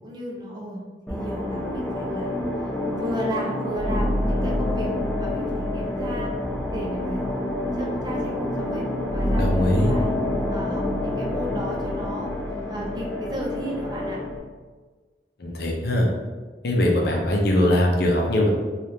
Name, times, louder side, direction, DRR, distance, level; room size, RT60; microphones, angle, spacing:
voice 1, 0.0-0.8 1.1-2.4 3.0-6.3 6.7-7.2 7.8-8.9 9.1-10.1 10.5-12.3 12.7-14.2, equal, 25° right, -2 dB, 0.5 m, -34 dB
sound 1, 1.1-14.4, left 1 dB, 5° left, 0.8 m, -27 dB
voice 2, 9.4-9.9 15.4-16.1 16.6-18.5, left 1 dB, 65° left, 0 dB, 0.6 m, -21 dB
3.3 x 2.4 x 2.8 m, 1.4 s
head